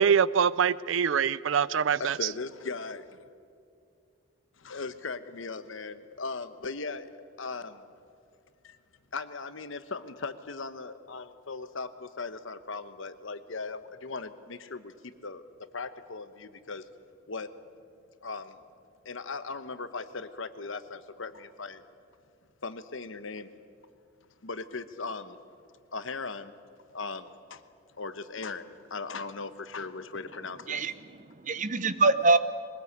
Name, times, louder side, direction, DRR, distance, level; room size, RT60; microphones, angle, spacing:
voice 1, 0.0-2.2, right 7 dB, 65° right, 20 dB, 0.4 m, -24 dB
voice 2, 2.0-3.2 4.6-7.1 7.4-7.9 8.6-8.8 9.1-14.9 15.2-15.4 15.7-16.8 17.3-17.5 18.2-18.6 19.0-21.8 22.6-23.5 24.4-25.4 25.9-26.6 26.9-27.6 28.0-30.8, left 4 dB, 70° left, 11 dB, 1.0 m, -38 dB
voice 3, 30.7-32.4, right 3 dB, 40° right, 13 dB, 0.8 m, -25 dB
21.5 x 20.5 x 8.1 m, 2.4 s
head